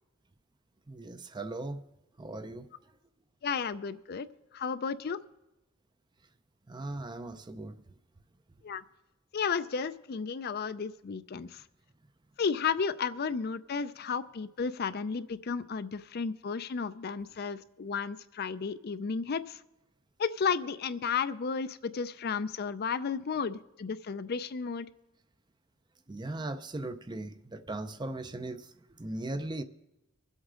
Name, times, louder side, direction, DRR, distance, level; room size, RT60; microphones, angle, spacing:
voice 1, 0.9-1.8 2.2-2.7 6.7-7.8 26.1-29.6, right 2 dB, 20° right, 0.5 m, -38 dB
voice 2, 3.4-4.3 4.5-5.2 8.6-8.8 9.3-11.6 12.4-19.6 20.2-24.9, left 5 dB, 45° left, 0.4 m, -33 dB
24.5 x 8.1 x 3.7 m
head